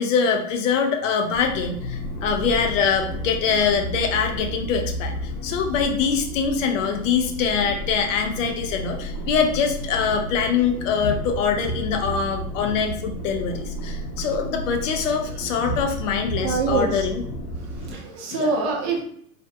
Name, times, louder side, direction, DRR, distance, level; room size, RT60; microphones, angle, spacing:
voice 1, 0.0-17.2 18.3-18.5, left 6 dB, 55° left, 4 dB, 0.5 m, -24 dB
sound 1, 1.3-17.9, equal, 80° left, 0.8 m, -32 dB
voice 2, 16.4-17.1 17.6-19.0, right 3 dB, 40° right, 1 dB, 0.6 m, -25 dB
2.5 x 2.1 x 2.5 m, 0.63 s
hypercardioid pair, 95°, 46 cm